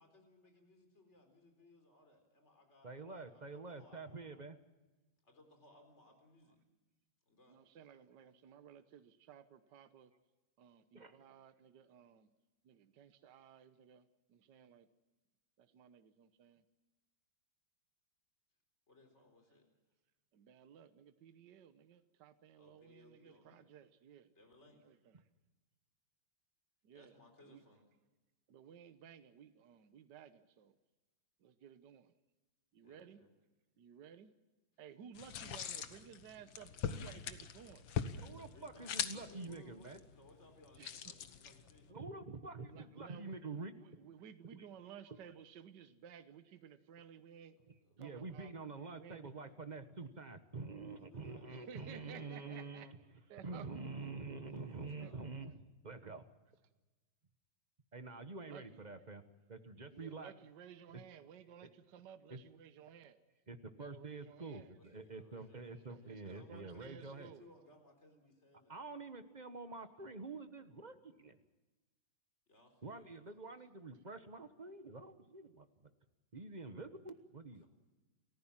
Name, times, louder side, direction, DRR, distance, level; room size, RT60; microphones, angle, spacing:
voice 1, 0.0-4.2 5.2-6.6 7.3-7.6 18.9-19.7 22.5-23.6 24.3-24.9 26.9-27.8 32.8-33.3 38.3-41.9 47.6-48.0 50.9-52.8 54.4-55.3 64.7-65.9 66.2-68.8 72.5-73.2, left 2 dB, 35° left, 5 dB, 4.3 m, -64 dB
voice 2, 2.8-4.6 10.9-11.2 38.1-40.0 41.9-43.7 44.5-44.7 45.1-45.2 48.0-53.0 53.4-55.5 55.8-56.2 57.9-59.2 59.5-60.3 62.3-62.4 63.5-67.3 68.7-71.4 72.8-75.7 76.3-77.6, right 3 dB, 25° right, 9 dB, 1.1 m, -47 dB
voice 3, 7.5-10.1 10.6-12.3 12.6-14.9 15.6-16.6 20.3-24.3 24.8-25.0 26.8-27.1 27.5-27.6 28.5-30.7 31.4-32.1 32.7-33.2 33.8-34.3 34.8-37.8 40.8-41.0 42.7-43.4 43.7-47.6 48.0-48.5 49.0-49.4 51.5-52.9 53.3-54.1 55.0-55.1 58.5-58.8 59.9-63.2 63.8-64.7 65.9-67.5, right 8 dB, 65° right, 11 dB, 1.6 m, -56 dB
sound 1, 35.2-41.9, left 8 dB, 75° left, 1.9 m, -43 dB
29.5 x 14.5 x 7.4 m, 1.1 s
omnidirectional pair, 2.1 m